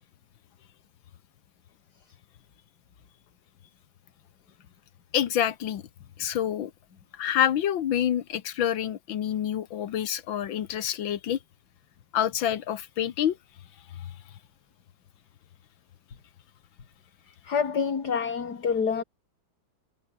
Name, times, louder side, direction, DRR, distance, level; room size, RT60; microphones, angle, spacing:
voice 1, 5.1-5.8 6.2-6.7 7.1-11.4 12.1-13.4 13.9-14.1, left 10 dB, 75° left, 1.9 m, -27 dB
voice 2, 17.4-19.0, left 6 dB, 55° left, 2.8 m, -27 dB
omnidirectional pair, 2.2 m